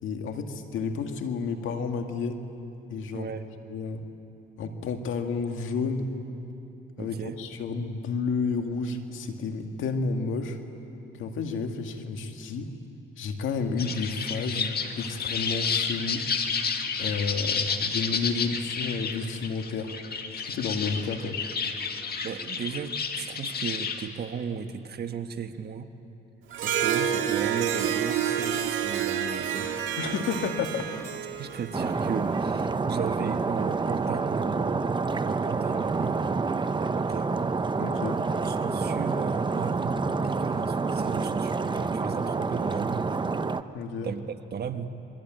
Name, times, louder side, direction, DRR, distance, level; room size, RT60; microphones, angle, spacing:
voice 1, 0.0-2.4 2.9-3.3 3.7-4.0 4.6-6.1 7.0-10.6 11.2-12.7 13.2-16.3 17.0-19.9 20.4-21.4 30.0-30.9 37.8-38.2 43.7-44.1, left 4 dB, 80° left, 5 dB, 2.1 m, -31 dB
voice 2, 3.1-3.5 7.0-7.4 22.2-25.9 26.6-30.0 31.4-34.9 35.2-36.2 37.0-37.3 38.4-43.2 44.0-44.9, right 7 dB, 55° right, 7 dB, 1.5 m, -36 dB
sound 1, 13.8-24.1, left 6 dB, 50° left, 2.0 m, -31 dB
Harp, 26.5-32.2, right 9 dB, 85° right, 1.9 m, -29 dB
Stream, 31.7-43.6, right 4 dB, 25° right, 0.8 m, -28 dB
27.0 x 22.0 x 9.1 m, 2.9 s
cardioid pair, 90°, 20 cm